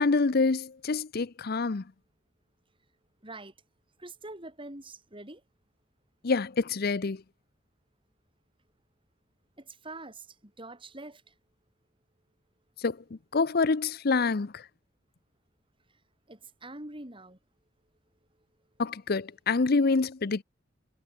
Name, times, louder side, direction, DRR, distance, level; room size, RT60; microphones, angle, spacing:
voice 1, 0.0-1.8 6.2-7.2 12.8-13.0 13.3-14.7 18.8-20.4, left 4 dB, 55° left, 0.7 m, -26 dB
voice 2, 3.2-3.5 4.0-5.4 9.6-11.3 16.3-17.4, right 2 dB, 30° right, 6.4 m, -44 dB
head